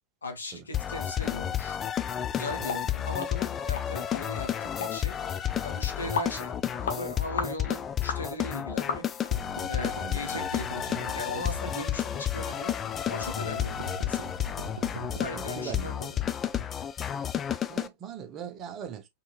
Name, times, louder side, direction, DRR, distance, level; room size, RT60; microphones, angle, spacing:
voice 1, 0.2-1.8 2.3-5.2 5.6-9.0 9.7-12.7 13.1-14.3 15.2-16.2, left 1 dB, 75° left, 1.3 m, -38 dB
sound 1, 0.7-17.9, left 10 dB, 25° left, 0.5 m, -31 dB
sound 2, 2.7-2.8 3.2-3.3 3.8-3.9 4.1-4.3 4.8-4.9 5.5-5.6 6.2-6.3 6.8-7.0 7.4-7.6 8.1-8.2 8.9-9.3 9.8-9.9 10.4-10.5 10.9-11.0, left 6 dB, 60° left, 0.8 m, -33 dB
sound 3, 9.3-12.3 13.2-16.5, right 3 dB, 70° right, 0.6 m, -42 dB
voice 2, 15.3-15.9 16.2-16.6 17.7-19.1, right 8 dB, 30° right, 1.0 m, -41 dB
4.4 x 3.8 x 2.4 m
figure-of-eight pair, 90°, 0 cm